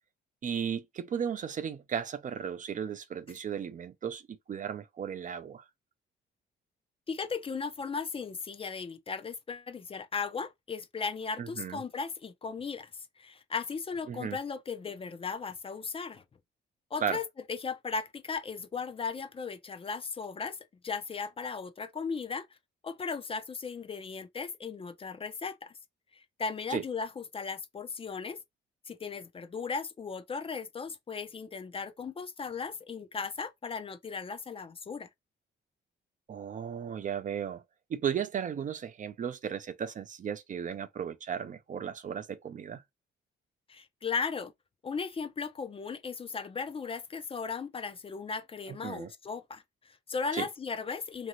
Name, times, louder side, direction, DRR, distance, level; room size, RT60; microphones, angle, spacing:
voice 1, 0.4-5.6 11.4-11.8 14.1-14.4 17.0-17.2 26.7-26.8 36.3-37.6 37.9-42.8 48.7-49.1 50.3-50.5, right 8 dB, 40° right, 0.4 m, -35 dB
voice 2, 7.1-16.2 16.9-20.6 20.8-22.5 22.8-25.7 26.1-28.4 28.9-35.1 43.7-44.5 44.8-51.3, left 5 dB, 30° left, 0.4 m, -37 dB
2.7 x 2.6 x 2.9 m
cardioid pair, 90°, 20 cm